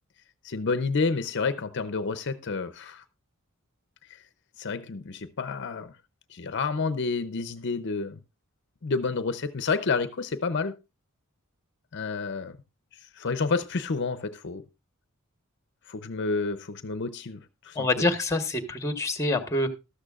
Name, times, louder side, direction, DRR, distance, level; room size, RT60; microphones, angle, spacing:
voice 1, 0.4-3.0 4.1-4.2 4.6-6.0 6.3-8.2 8.8-10.8 11.9-12.6 13.2-14.7 15.9-18.1, left 4 dB, 55° left, 0.6 m, -29 dB
voice 2, 17.7-19.7, left 2 dB, 15° left, 1.1 m, -26 dB
13.0 x 13.0 x 2.4 m
head